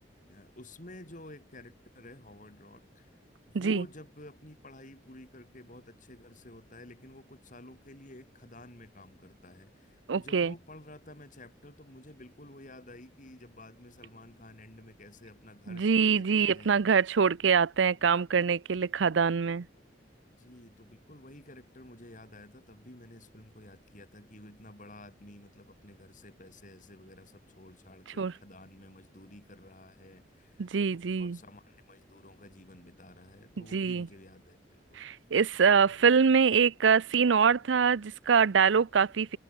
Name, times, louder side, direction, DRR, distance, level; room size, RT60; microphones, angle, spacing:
voice 1, 0.3-3.2 3.5-16.8 19.7-19.8 20.4-30.8 31.2-35.0 35.8-36.0, left 1 dB, 45° left, 5.9 m, -51 dB
voice 2, 10.1-10.5 15.7-19.6 28.2-28.3 30.6-31.4 33.7-34.1 35.0-39.4, right 6 dB, 90° right, 0.5 m, -24 dB
head